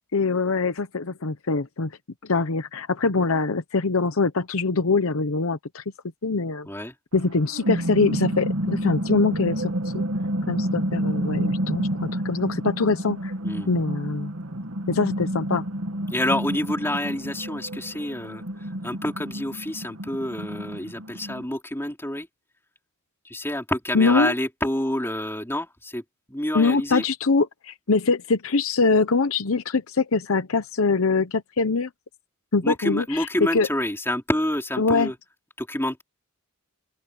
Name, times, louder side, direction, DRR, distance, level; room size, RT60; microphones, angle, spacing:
voice 1, 0.1-1.9 2.2-5.8 6.2-6.7 7.1-10.0 10.5-13.3 13.7-14.3 14.9-15.6 23.9-24.3 26.5-31.9 32.5-33.3 33.5-33.7 34.8-35.1, left 4 dB, 65° left, 0.9 m, -23 dB
sound 1, 7.2-21.4, right 1 dB, 65° right, 1.8 m, -29 dB
voice 2, 16.1-22.3 23.2-26.0 26.3-27.0 32.6-35.2 35.6-36.0, left 1 dB, 10° left, 4.0 m, -28 dB
open air
head